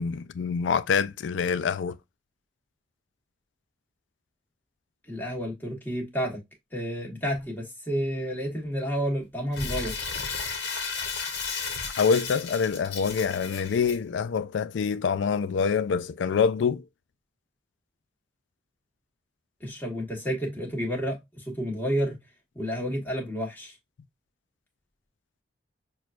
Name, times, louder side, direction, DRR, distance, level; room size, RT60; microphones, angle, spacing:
voice 1, 0.0-2.0 11.8-16.8, left 6 dB, 85° left, 0.4 m, -26 dB
voice 2, 5.1-6.4 6.7-10.0 19.6-22.2 22.5-23.7, equal, 10° left, 1.3 m, -30 dB
Crumpling crinkling, 9.5-14.0, left 5 dB, 65° left, 1.0 m, -33 dB
6.2 x 2.3 x 2.4 m
head